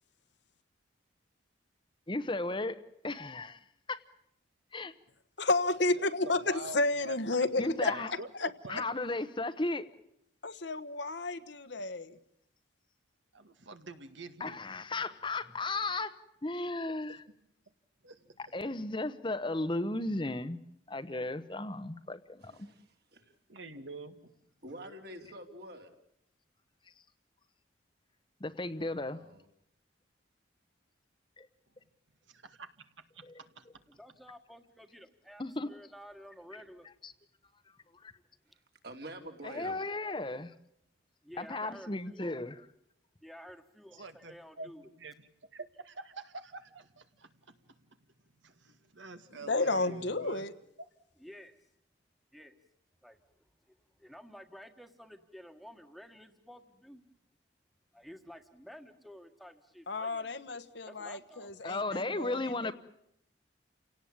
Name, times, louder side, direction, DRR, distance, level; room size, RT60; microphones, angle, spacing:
voice 1, 2.1-2.8 3.0-3.6 3.9-4.0 4.7-4.9 7.6-8.1 8.7-9.9 14.4-16.2 16.4-17.2 18.4-20.6 20.9-22.5 28.4-29.2 31.4-31.5 33.2-33.4 35.4-35.7 36.5-36.6 37.0-37.1 37.9-38.1 39.4-40.5 41.4-42.6 61.6-62.7, left 2 dB, 25° left, 11 dB, 0.9 m, -35 dB
voice 2, 5.4-7.9 8.4-8.5 10.4-12.2 49.4-50.5 59.9-62.7, left 2 dB, 65° left, 11 dB, 1.3 m, -31 dB
voice 3, 5.9-7.5 7.8-8.9 13.3-14.6 18.0-18.3 23.5-24.2 32.3-33.7 43.9-44.7 45.0-47.5 47.9-48.0 48.4-50.5 50.8-50.9, right 3 dB, 75° right, 9 dB, 2.0 m, -47 dB
voice 4, 22.4-22.8 23.1-23.2 24.6-25.9 28.8-29.4 38.8-39.8, right 1 dB, 55° right, 4 dB, 3.2 m, -47 dB
voice 5, 33.9-36.9 38.5-38.6 41.2-42.3 43.2-44.9 51.2-51.5 52.3-52.6 53.0-53.2 53.7-57.0 57.9-60.3 60.8-61.5, equal, ahead, 7 dB, 1.6 m, -52 dB
29.5 x 18.0 x 8.7 m, 0.74 s
head